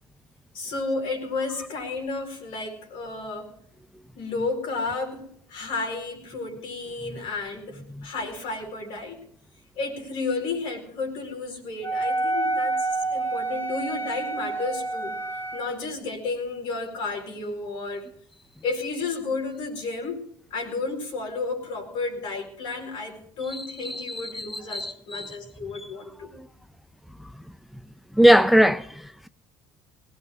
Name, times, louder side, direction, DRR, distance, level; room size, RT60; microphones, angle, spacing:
voice 1, 0.5-3.5 4.1-9.2 9.8-15.2 15.5-18.1 18.6-20.2 20.5-26.3, left 3 dB, 65° left, 4.4 m, -32 dB
Wind instrument woodwind instrument, 11.8-15.8, right 3 dB, 25° left, 1.3 m, -28 dB
voice 2, 23.5-25.4 26.3-26.5 28.1-29.3, equal, ahead, 0.5 m, -21 dB
20.0 x 17.5 x 2.5 m
hypercardioid pair, 70°, 10 cm